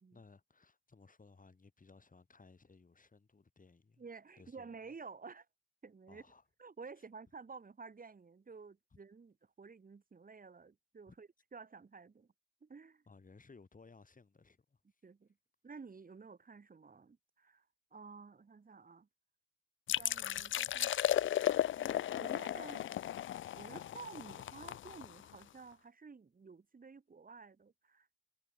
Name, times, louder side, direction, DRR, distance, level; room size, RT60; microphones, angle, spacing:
voice 1, 0.1-4.0 4.4-4.8 6.1-6.4 7.0-7.1 11.1-11.2 13.1-14.8, left 4 dB, 25° left, 6.2 m, -61 dB
voice 2, 4.0-5.5 5.8-6.2 6.6-12.3 12.6-13.0 15.0-15.3 15.6-17.7 17.9-19.1 20.0-21.3 21.8-22.9 23.6-28.1, right 4 dB, 30° right, 2.1 m, -52 dB
sound 1, 19.9-25.4, left 12 dB, 45° left, 0.4 m, -35 dB
cardioid pair, 90°, 30 cm